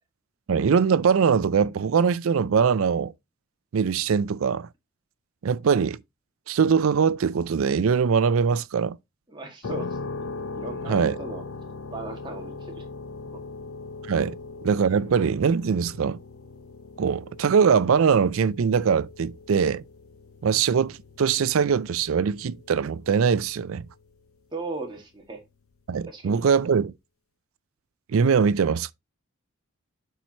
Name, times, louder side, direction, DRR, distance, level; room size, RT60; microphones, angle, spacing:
voice 1, 0.5-3.1 3.7-4.7 5.4-6.0 6.5-9.0 10.9-11.2 14.1-14.3 14.6-16.2 17.0-19.8 20.4-23.9 25.9-26.9 28.1-28.9, right 6 dB, 75° right, 0.4 m, -22 dB
voice 2, 9.3-10.0 10.5-11.4 11.9-12.8 13.3-13.4 14.2-14.3 24.5-25.4 26.1-26.4, right 2 dB, 20° right, 1.8 m, -37 dB
sound 1, 9.6-24.3, left 3 dB, 80° left, 0.7 m, -40 dB
11.5 x 4.5 x 2.9 m
head